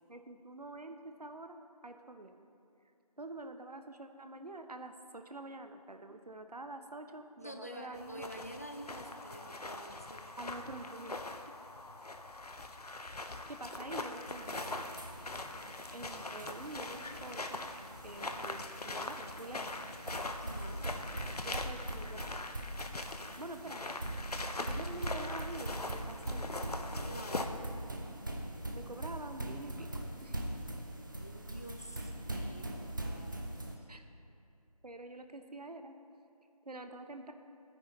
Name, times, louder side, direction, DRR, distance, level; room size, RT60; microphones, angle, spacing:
voice 1, 0.1-1.6 1.8-2.4 3.2-8.3 10.4-11.2 13.2-14.8 15.9-17.7 18.0-19.7 20.8-21.0 21.3-22.5 23.4-23.8 24.4-26.5 28.7-29.9 30.2-30.4 33.9-34.0 34.8-35.9 36.7-37.3, right 2 dB, 75° right, 7 dB, 0.9 m, -47 dB
voice 2, 7.4-10.3 20.4-20.8 27.0-27.7 31.2-33.9, right 1 dB, 25° left, 5 dB, 0.5 m, -48 dB
sound 1, 7.9-27.5, left 2 dB, 70° left, 0.8 m, -42 dB
sound 2, 14.3-33.8, right 1 dB, 30° right, 0.8 m, -42 dB
16.0 x 9.5 x 3.2 m, 2.7 s
figure-of-eight pair, 165°, 20 cm